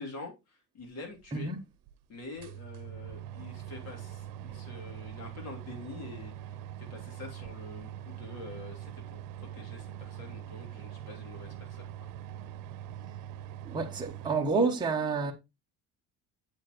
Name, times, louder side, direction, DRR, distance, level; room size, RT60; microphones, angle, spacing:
voice 1, 0.0-1.5 2.1-11.9, left 3 dB, 50° left, 3.0 m, -46 dB
sound 1, 1.2-1.3 1.9-2.0 2.2-14.4, right 10 dB, 85° right, 0.7 m, -43 dB
voice 2, 13.6-15.3, right 4 dB, 15° right, 1.2 m, -29 dB
7.6 x 7.3 x 3.0 m
cardioid pair, 150°, 32 cm